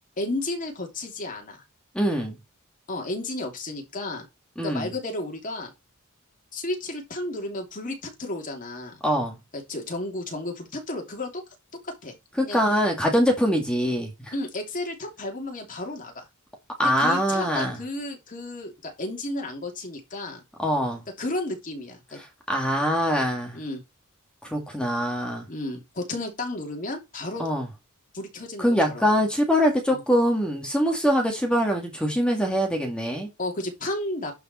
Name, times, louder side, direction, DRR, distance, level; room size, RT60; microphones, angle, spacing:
voice 1, 0.2-1.6 2.9-4.3 4.6-5.7 6.5-9.0 9.5-11.4 11.8-12.2 12.4-12.6 14.3-16.3 16.8-20.4 21.2-22.2 23.5-23.8 25.5-27.4 28.1-29.1 29.9-30.0 33.4-34.3, left 2 dB, 40° left, 3.0 m, -33 dB
voice 2, 1.9-2.4 4.6-4.9 9.0-9.4 12.4-14.3 16.8-17.8 20.6-21.0 22.5-23.6 24.4-25.5 27.4-27.7 28.6-33.3, equal, 5° left, 2.1 m, -23 dB
11.0 x 5.1 x 4.3 m
head